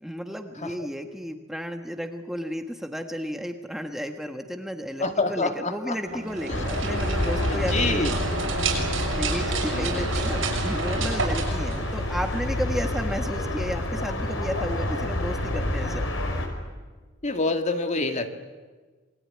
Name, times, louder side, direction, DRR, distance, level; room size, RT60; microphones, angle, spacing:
voice 1, 0.0-8.0 9.2-16.4, equal, ahead, 5 dB, 1.4 m, -33 dB
voice 2, 5.0-6.0 6.5-6.6 7.5-8.1 9.7-10.1 17.2-18.3, left 3 dB, 40° left, 6 dB, 2.2 m, -27 dB
sound 1, 6.0-11.2, equal, 40° right, 6.2 m, -40 dB
sound 2, 6.2-12.4, right 3 dB, 85° right, 7.1 m, -30 dB
sound 3, 6.5-16.5, left 1 dB, 85° left, 4.9 m, -28 dB
27.5 x 22.0 x 9.8 m, 1.3 s
head